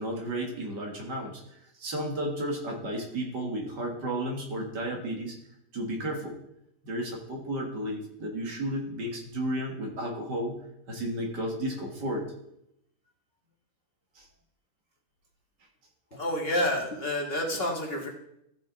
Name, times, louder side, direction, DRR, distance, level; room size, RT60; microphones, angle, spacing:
voice 1, 0.0-1.4 1.8-5.4 5.7-6.4 6.8-10.6 10.9-12.3 14.2-14.3 16.1-16.2, right 1 dB, 85° right, 0 dB, 2.4 m, -33 dB
voice 2, 16.2-18.1, left 1 dB, 35° left, 0 dB, 1.6 m, -29 dB
14.5 x 5.2 x 3.9 m, 0.79 s
omnidirectional pair, 1.8 m